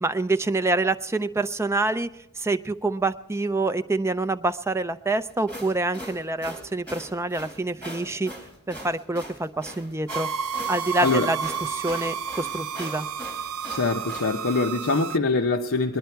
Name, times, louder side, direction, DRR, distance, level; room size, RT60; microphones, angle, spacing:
voice 1, 0.0-2.1 2.4-8.3 8.7-10.3 10.7-13.1, right 2 dB, 10° right, 11 dB, 0.5 m, -26 dB
sound 1, 5.3-14.3, equal, 5° left, 3.9 m, -40 dB
sound 2, 10.1-15.2, right 7 dB, 70° right, 0.6 m, -31 dB
voice 2, 13.7-16.0, left 3 dB, 65° left, 3 dB, 0.8 m, -24 dB
22.0 x 10.5 x 4.5 m, 0.85 s
head